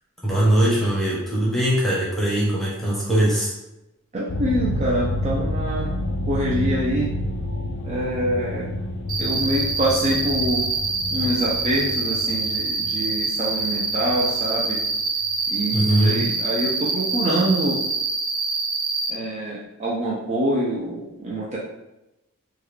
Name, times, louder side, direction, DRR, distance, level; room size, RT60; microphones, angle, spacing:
voice 1, 0.2-3.5 15.7-16.2, right 1 dB, ahead, -7 dB, 0.9 m, -21 dB
voice 2, 4.1-5.9 6.3-7.1 7.8-8.7 9.2-10.6 11.1-14.8 15.5-17.8 19.1-21.6, right 1 dB, 30° right, -6 dB, 0.5 m, -25 dB
sound 1, 4.3-15.3, left 1 dB, 55° left, 0.4 m, -29 dB
Cricket, 9.1-19.1, right 3 dB, 70° right, 0.8 m, -25 dB
3.7 x 2.3 x 3.2 m, 0.93 s
head